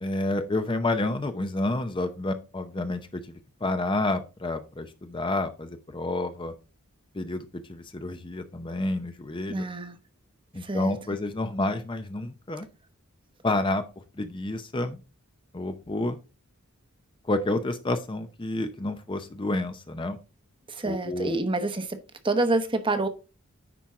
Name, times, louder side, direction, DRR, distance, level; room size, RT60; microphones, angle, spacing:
voice 1, 0.0-3.2 3.6-6.5 7.1-9.7 10.5-12.7 13.4-13.8 14.1-15.0 15.5-16.2 17.2-20.2 20.8-21.3, left 2 dB, 25° left, 0.7 m, -29 dB
voice 2, 9.5-10.0 10.6-10.9 20.7-22.0 22.2-23.1, right 2 dB, 25° right, 1.0 m, -27 dB
10.0 x 4.5 x 3.6 m
head